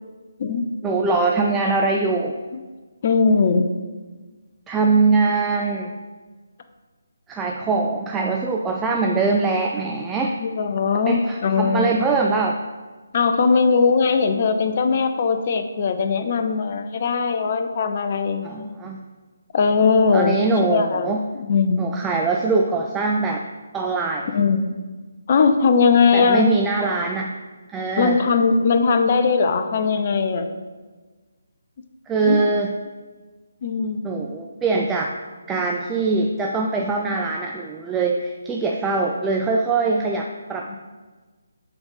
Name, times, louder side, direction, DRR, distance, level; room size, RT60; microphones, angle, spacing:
voice 1, 0.8-2.4 4.7-6.0 7.3-10.4 11.1-12.6 18.4-19.0 20.1-21.2 21.8-23.4 23.7-24.3 26.1-27.3 27.7-28.3 32.1-32.8 34.0-35.1 35.5-40.8, right 3 dB, 10° right, 0 dB, 0.3 m, -22 dB
voice 2, 3.0-3.7 10.4-11.9 13.1-18.9 19.5-20.4 20.7-21.1 21.4-21.9 24.3-24.7 25.3-26.5 28.0-30.5 32.3-32.4 33.6-34.1 40.7-40.8, left 5 dB, 35° left, 7 dB, 0.6 m, -20 dB
6.7 x 4.1 x 5.6 m, 1.3 s
figure-of-eight pair, 145°, 0 cm